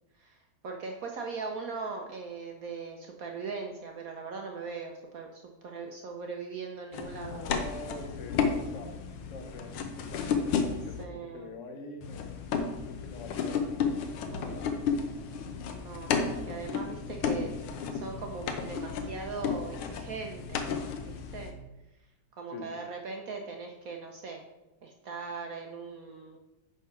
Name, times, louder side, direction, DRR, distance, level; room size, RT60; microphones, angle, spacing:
voice 1, 0.2-7.4 11.0-11.5 14.3-14.5 15.7-17.5 17.9-20.8 21.1-21.5 22.4-24.4 24.8-26.4, right 4 dB, 75° right, 2 dB, 0.8 m, -40 dB
sound 1, 6.9-11.0 12.0-21.5, left 6 dB, 80° left, 1.7 m, -33 dB
voice 2, 7.2-11.1 11.3-13.9 14.2-14.7 22.5-22.7, left 3 dB, 55° left, 5 dB, 0.8 m, -45 dB
10.0 x 3.6 x 5.7 m, 0.99 s
omnidirectional pair, 2.4 m